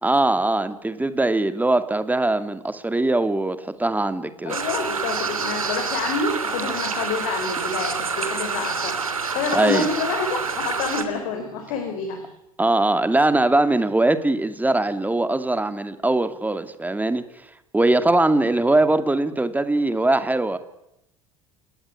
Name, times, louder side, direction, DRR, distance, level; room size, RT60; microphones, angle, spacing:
voice 1, 0.0-4.6 9.5-9.9 12.6-17.2 17.7-20.6, right 2 dB, 10° right, 11 dB, 2.4 m, -21 dB
voice 2, 4.4-9.0 9.3-12.3, left 4 dB, 60° left, 5 dB, 4.8 m, -28 dB
sound 1, 4.5-11.0, right 5 dB, 80° right, 2.8 m, -27 dB
29.0 x 18.0 x 9.9 m, 0.88 s
figure-of-eight pair, 65°, 18 cm